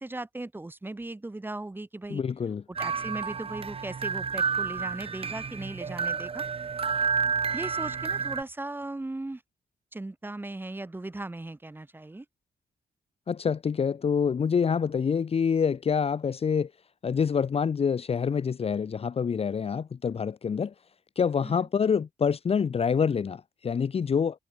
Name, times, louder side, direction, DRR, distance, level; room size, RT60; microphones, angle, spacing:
voice 1, 0.0-2.2 2.7-6.4 7.5-9.4 9.9-12.2 21.4-21.7, right 2 dB, 15° right, 5.0 m, -38 dB
voice 2, 2.1-2.6 13.3-16.7 17.0-20.7 21.2-24.4, left 6 dB, 40° left, 1.1 m, -26 dB
sound 1, 2.7-8.4, right 5 dB, 35° right, 2.5 m, -30 dB
wide cardioid pair, 145°, 16 cm